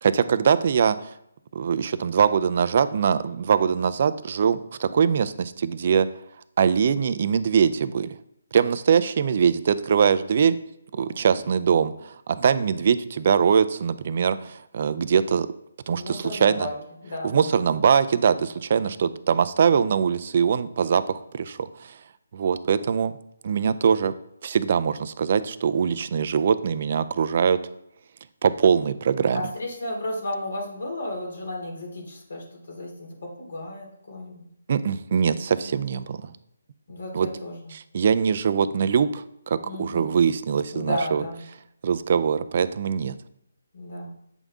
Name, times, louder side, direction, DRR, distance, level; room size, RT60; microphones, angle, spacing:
voice 1, 0.0-1.1 1.5-6.1 6.6-8.1 8.5-10.6 10.9-15.5 15.9-16.7 17.2-22.0 22.3-23.1 23.4-24.1 24.4-27.6 28.4-29.4 34.7-36.3 37.1-37.3 37.9-41.2 41.8-43.2, right 7 dB, 45° right, 13 dB, 0.5 m, -22 dB
voice 2, 11.0-11.4 16.0-16.7 17.0-17.6 18.9-19.1 29.3-34.4 35.6-35.7 36.9-37.7 39.6-40.1 40.7-41.4 43.7-44.1, left 1 dB, 65° left, 0 dB, 3.0 m, -33 dB
8.2 x 5.4 x 3.7 m, 0.77 s
figure-of-eight pair, 155°, 0 cm